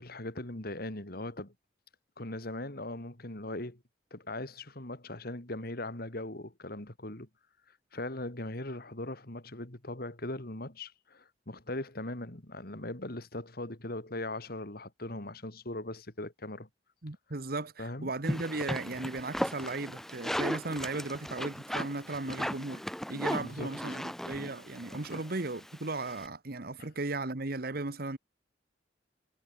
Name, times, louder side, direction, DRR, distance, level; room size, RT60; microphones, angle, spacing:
voice 1, 0.0-1.5 2.2-3.8 4.1-7.3 7.9-16.7 17.8-18.1 23.3-24.0 25.1-25.2, left 1 dB, 55° left, 2.8 m, -40 dB
voice 2, 17.0-22.8 23.1-28.2, right 3 dB, 55° right, 1.3 m, -36 dB
sound 1, 18.2-26.3, equal, ahead, 0.7 m, -37 dB
head